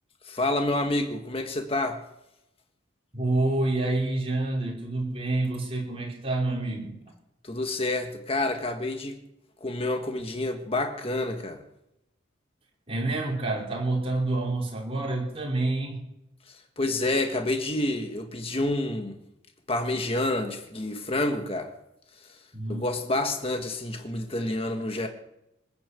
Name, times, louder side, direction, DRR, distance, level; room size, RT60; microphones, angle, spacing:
voice 1, 0.2-2.0 7.4-9.2 9.6-11.6 16.8-19.2 19.7-21.7 22.7-25.1, left 2 dB, 30° left, 5 dB, 1.5 m, -28 dB
voice 2, 3.1-6.9 12.9-16.0 22.5-22.8, right 2 dB, 30° right, -3 dB, 5.4 m, -28 dB
20.0 x 8.8 x 8.2 m, 0.85 s
head